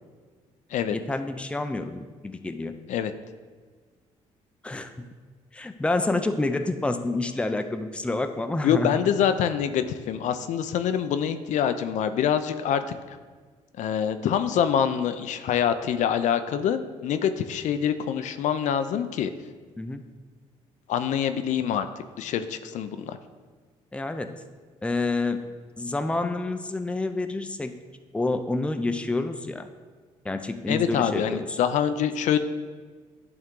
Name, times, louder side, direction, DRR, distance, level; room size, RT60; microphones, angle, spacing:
voice 1, 0.9-2.7 4.6-5.1 5.5-9.2 19.8-20.0 23.9-24.3 24.8-25.4 25.8-27.7 28.1-29.7 30.2-31.6, left 2 dB, 10° left, 8 dB, 0.5 m, -28 dB
voice 2, 8.6-12.8 13.8-19.3 20.9-23.2 30.7-32.4, left 8 dB, 70° left, 10 dB, 0.4 m, -25 dB
10.5 x 3.6 x 3.7 m, 1.5 s
cardioid pair, 85°, 13 cm